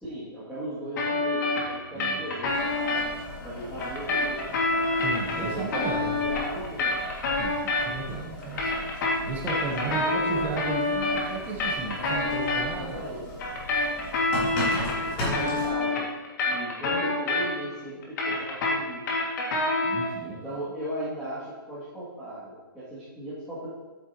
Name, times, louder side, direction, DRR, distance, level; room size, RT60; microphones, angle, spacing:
voice 1, 0.0-3.2 3.4-4.4 5.4-5.8 6.1-7.0 9.9-10.5 11.9-12.5 12.8-13.2 15.0-16.1 16.4-19.0 20.2-23.7, right 1 dB, ahead, -14 dB, 2.5 m, -37 dB
sound 1, 1.0-3.1 3.8-8.1 8.4-12.7 13.4-17.7 18.0-20.2, left 2 dB, 50° left, 2.2 m, -27 dB
voice 2, 1.9-2.2 5.0-6.1 7.3-8.8 9.2-13.1 14.3-14.6 19.8-20.6, right 3 dB, 15° right, -1 dB, 1.1 m, -35 dB
Boiling, 2.4-15.7, left 1 dB, 25° left, 3.3 m, -38 dB
11.0 x 9.0 x 3.0 m, 1.2 s
hypercardioid pair, 165°, 12 cm